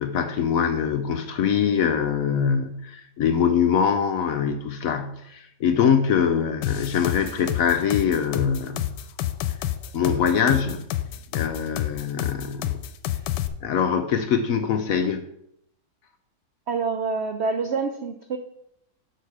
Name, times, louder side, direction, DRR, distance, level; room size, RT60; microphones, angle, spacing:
voice 1, 0.0-8.9 9.9-10.9 11.3-12.8 13.6-15.2, left 7 dB, 65° left, 8 dB, 0.9 m, -23 dB
sound 1, 6.6-13.5, left 13 dB, 85° left, 1.2 m, -28 dB
voice 2, 16.7-18.4, right 4 dB, 75° right, 6 dB, 0.6 m, -26 dB
6.6 x 6.4 x 4.7 m, 0.76 s
omnidirectional pair, 1.8 m